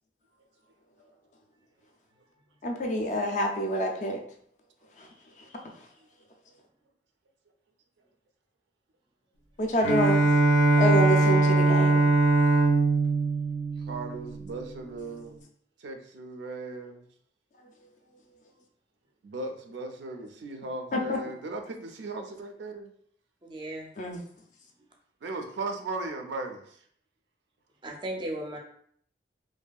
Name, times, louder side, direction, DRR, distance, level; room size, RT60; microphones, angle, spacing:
voice 1, 2.6-4.2 9.6-10.2 10.8-12.0 20.9-21.2 24.0-24.2, equal, 40° left, 2 dB, 0.3 m, -27 dB
Bowed string instrument, 9.8-14.5, right 2 dB, 90° left, 0.6 m, -22 dB
voice 2, 13.9-15.4 15.8-17.0 19.2-22.9 25.2-26.6, right 3 dB, 85° right, 5 dB, 0.4 m, -37 dB
voice 3, 23.4-23.9 27.8-28.6, right 1 dB, 25° right, 0 dB, 0.4 m, -36 dB
2.6 x 2.4 x 2.2 m, 0.63 s
head